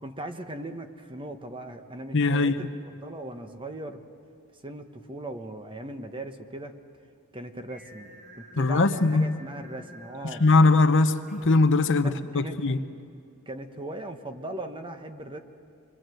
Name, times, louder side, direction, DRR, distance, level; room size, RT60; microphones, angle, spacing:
voice 1, 0.0-2.7 3.0-4.0 4.6-6.7 7.3-8.1 8.4-10.5 12.0-12.7 13.5-15.4, right 1 dB, 25° right, 1.2 m, -39 dB
voice 2, 2.1-2.5 8.6-9.3 10.2-12.8, left 3 dB, 60° left, 0.9 m, -21 dB
Singing, 7.7-12.8, right 1 dB, 40° right, 5.8 m, -51 dB
26.5 x 22.5 x 7.8 m
head